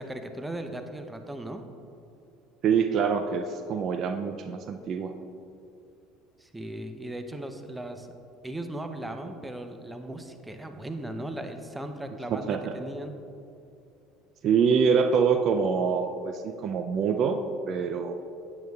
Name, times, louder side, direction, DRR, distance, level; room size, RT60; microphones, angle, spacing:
voice 1, 0.0-1.6 6.4-8.1 8.4-13.1, right 1 dB, 10° right, 6 dB, 0.7 m, -37 dB
voice 2, 2.6-5.1 12.3-12.8 14.4-17.4 17.7-18.1, right 6 dB, 50° right, 7 dB, 0.4 m, -25 dB
9.0 x 8.6 x 2.3 m, 2.7 s
hypercardioid pair, 75°, 0 cm